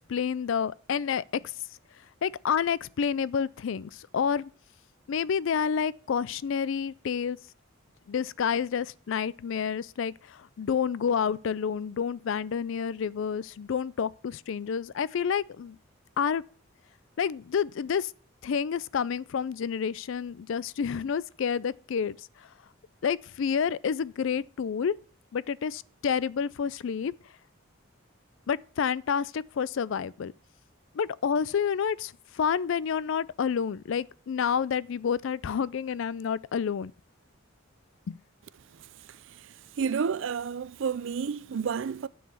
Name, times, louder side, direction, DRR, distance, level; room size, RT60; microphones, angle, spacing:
voice 1, 0.1-1.5 2.2-4.5 5.1-7.4 8.1-15.8 16.2-16.4 17.2-18.1 18.4-22.5 23.0-24.9 25.3-27.1 28.5-30.3 30.9-36.9 38.1-38.2, left 7 dB, 65° left, 0.4 m, -29 dB
voice 2, 39.8-42.1, right 6 dB, 60° right, 0.4 m, -30 dB
9.2 x 4.7 x 6.9 m
head